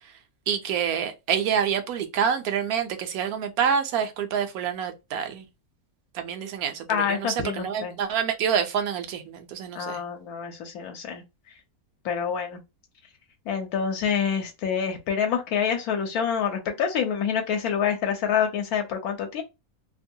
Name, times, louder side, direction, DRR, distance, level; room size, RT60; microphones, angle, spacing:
voice 1, 0.5-5.4 6.1-10.0, right 7 dB, 80° right, 1.1 m, -27 dB
voice 2, 6.9-7.9 9.7-11.2 12.0-12.6 13.5-19.4, left 7 dB, 80° left, 1.1 m, -27 dB
2.9 x 2.2 x 2.6 m
omnidirectional pair, 1.6 m